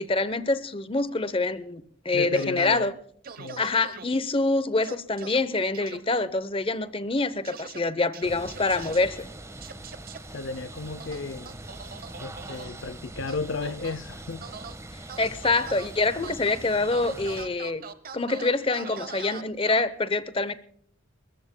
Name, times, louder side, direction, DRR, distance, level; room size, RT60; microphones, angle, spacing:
voice 1, 0.0-2.9 3.6-9.3 15.2-17.8 18.1-20.5, left 3 dB, 25° left, 0.8 m, -26 dB
voice 2, 2.1-2.9 3.4-3.6 10.3-11.6 12.2-14.4, left 3 dB, 60° left, 0.5 m, -33 dB
sound 1, 2.3-2.8 3.2-4.0 4.8-5.4 5.7-6.0 7.4-7.8 8.1-9.0 9.6-10.2 11.0-12.7 13.3-14.0 14.4-14.8 15.1-15.9 16.2-16.6 16.9-19.8, right 6 dB, 45° right, 0.9 m, -41 dB
sound 2, 8.2-17.4, right 1 dB, 15° right, 1.3 m, -42 dB
29.5 x 14.0 x 2.2 m
head